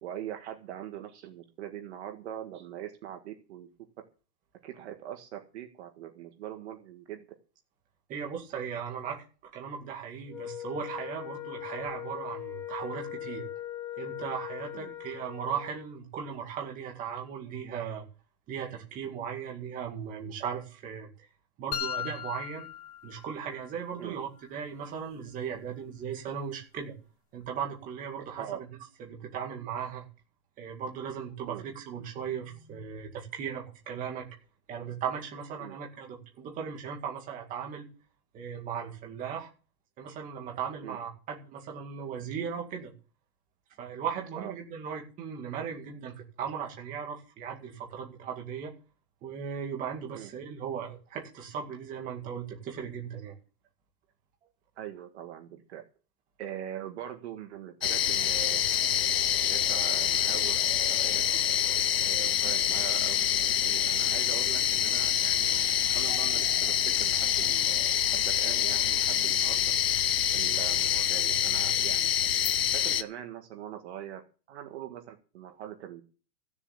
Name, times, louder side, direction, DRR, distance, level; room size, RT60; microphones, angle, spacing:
voice 1, 0.0-3.7 4.6-7.2 14.7-14.9 24.0-24.2 28.4-28.6 31.5-31.6 35.6-35.8 40.8-41.0 44.4-44.5 50.1-50.3 54.8-55.8 56.4-58.7 58.9-59.1 59.4-60.6 60.9-61.2 62.0-63.3 63.6-69.7 70.3-72.3 72.7-74.2 74.5-76.0, right 11 dB, 40° right, 5 dB, 1.8 m, -42 dB
voice 2, 8.1-9.2 9.5-13.4 14.0-18.0 18.5-21.1 21.6-22.7 23.0-26.9 27.3-28.7 29.0-30.1 30.6-34.3 34.7-37.9 38.3-39.5 40.0-42.9 43.8-48.7 49.2-53.3 63.6-63.8, right 7 dB, 15° right, 0 dB, 2.2 m, -37 dB
Wind instrument woodwind instrument, 10.3-15.9, left 13 dB, 5° left, 1.8 m, -40 dB
sound 1, 21.7-23.7, left 10 dB, 60° left, 2.0 m, -37 dB
sound 2, 57.8-73.0, left 10 dB, 40° left, 0.6 m, -26 dB
15.5 x 7.2 x 7.2 m, 0.37 s
hypercardioid pair, 170°, 50 cm